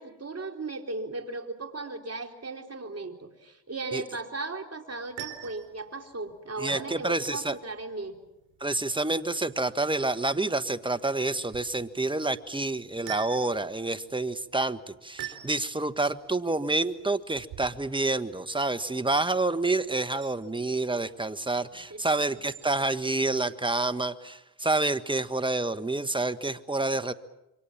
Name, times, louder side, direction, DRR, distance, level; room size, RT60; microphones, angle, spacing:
voice 1, 0.0-8.2 21.7-22.0, right 3 dB, 35° right, 5 dB, 4.0 m, -37 dB
sound 1, 4.9-23.1, right 13 dB, 75° right, 4.1 m, -48 dB
voice 2, 6.6-7.6 8.6-27.1, right 2 dB, 10° right, 12 dB, 1.5 m, -28 dB
27.5 x 24.0 x 7.3 m, 0.93 s
hypercardioid pair, 50°, 44 cm